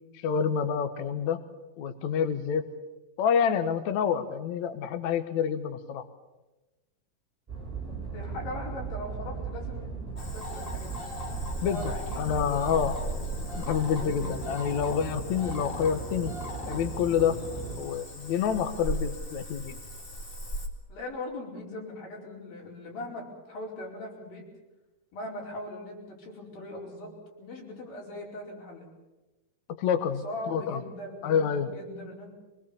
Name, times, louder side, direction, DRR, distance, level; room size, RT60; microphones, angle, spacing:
voice 1, 0.1-1.4 1.8-2.7 3.2-6.0 11.6-13.0 13.6-16.3 16.7-17.4 17.8-19.8 29.8-30.8 31.2-31.7, left 7 dB, 65° left, 9 dB, 2.2 m, -28 dB
sound 1, 7.5-17.8, right 4 dB, 15° right, 6.4 m, -37 dB
voice 2, 7.8-11.0 11.6-12.8 14.0-14.6 20.9-24.4 25.1-27.1 27.4-28.9 30.2-32.3, left 1 dB, 85° left, -1 dB, 6.6 m, -40 dB
Cricket / Frog, 10.2-20.7, equal, 20° left, 1.6 m, -38 dB
23.5 x 21.5 x 7.2 m, 1.1 s
omnidirectional pair, 3.9 m